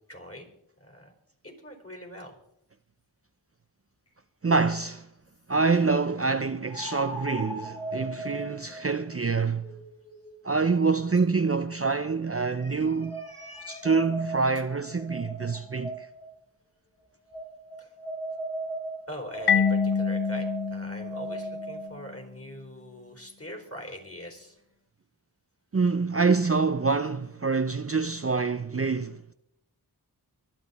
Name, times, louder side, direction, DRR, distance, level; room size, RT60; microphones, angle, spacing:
voice 1, 0.1-0.5 0.8-1.1 1.4-2.4 12.4-13.9 17.8-17.9 19.1-24.6, equal, 35° left, 4.4 m, -43 dB
sound 1, 4.1-4.2 6.7-11.8 12.6-16.3 17.3-21.9, right 1 dB, 85° left, 6.4 m, -38 dB
voice 2, 4.4-5.1 5.5-9.7 10.4-13.2 13.7-16.1 25.7-29.3, right 4 dB, 35° right, 0.6 m, -26 dB
Marimba xylophone, 19.5-22.1, left 6 dB, 65° left, 0.6 m, -27 dB
24.0 x 8.9 x 4.2 m
wide cardioid pair, 45°, 41 cm